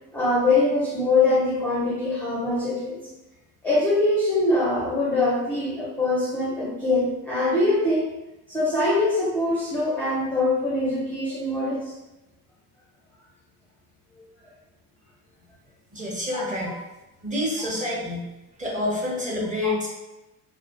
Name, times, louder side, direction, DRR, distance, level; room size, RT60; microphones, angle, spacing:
voice 1, 0.1-3.0 3.6-8.0 8.5-11.9 16.3-16.4, left 2 dB, 5° left, -6 dB, 0.5 m, -23 dB
voice 2, 15.9-16.7 17.2-18.2 18.6-19.9, left 1 dB, 15° right, -5 dB, 0.9 m, -27 dB
2.4 x 2.1 x 2.5 m, 0.99 s
hypercardioid pair, 65°, 47 cm